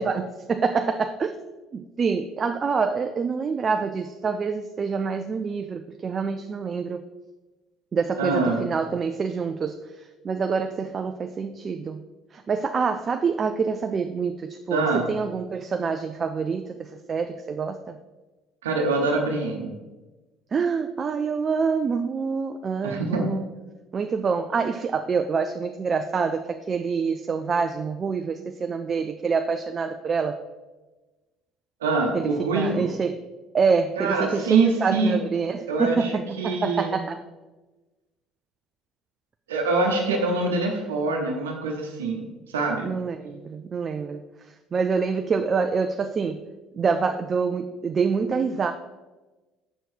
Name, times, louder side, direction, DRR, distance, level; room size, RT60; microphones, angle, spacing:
voice 1, 0.0-1.3 1.7-7.0 7.9-12.0 12.3-18.0 20.5-23.5 23.9-30.4 32.1-33.2 33.5-37.2 42.8-46.4 46.7-48.7, right 5 dB, 40° right, 7 dB, 0.4 m, -26 dB
voice 2, 8.2-8.6 14.7-15.1 18.6-19.7 22.8-23.3 31.8-32.8 34.0-35.2 35.7-37.0 39.5-42.9, right 3 dB, 90° right, 1 dB, 0.8 m, -24 dB
6.6 x 4.6 x 4.5 m, 1.2 s
hypercardioid pair, 65°, 0 cm